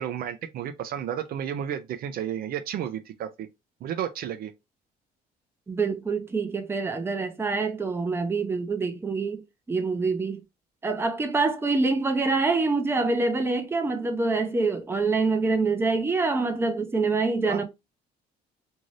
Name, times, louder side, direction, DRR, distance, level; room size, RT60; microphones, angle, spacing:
voice 1, 0.0-3.5 3.8-4.5 17.5-17.6, right 9 dB, 60° right, 0.5 m, -32 dB
voice 2, 5.7-9.4 9.7-10.4 10.8-17.6, right 3 dB, 15° right, 0.6 m, -25 dB
2.7 x 2.6 x 3.1 m
cardioid pair, 110°, 17 cm